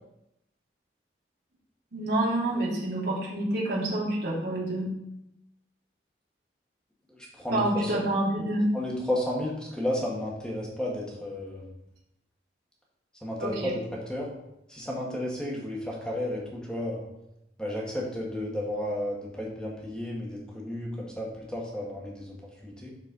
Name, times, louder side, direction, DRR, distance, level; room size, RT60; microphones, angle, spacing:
voice 1, 1.9-4.9 7.5-8.7 13.4-13.7, right 1 dB, 75° right, -7 dB, 3.1 m, -28 dB
voice 2, 7.1-7.9 8.7-11.6 13.2-13.8 14.1-14.3 14.7-17.0 17.6-22.4 22.6-22.9, left 1 dB, 5° left, -3 dB, 1.9 m, -32 dB
10.5 x 4.8 x 4.1 m, 0.85 s
head